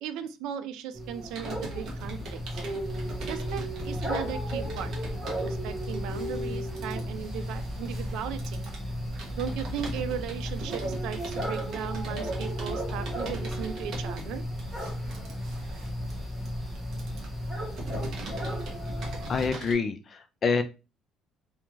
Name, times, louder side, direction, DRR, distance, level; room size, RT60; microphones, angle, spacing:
voice 1, 0.0-2.4 3.3-4.9 5.4-8.7 9.4-14.4, right 8 dB, 75° right, 10 dB, 0.4 m, -37 dB
sound 1, 0.9-19.5, equal, 5° right, 0.8 m, -34 dB
Computer keyboard, 1.3-19.7, right 2 dB, 50° right, 0.8 m, -43 dB
voice 2, 19.0-20.6, left 4 dB, 30° left, 8 dB, 0.3 m, -28 dB
2.4 x 2.3 x 3.0 m, 0.29 s
cardioid pair, 165°, 0 cm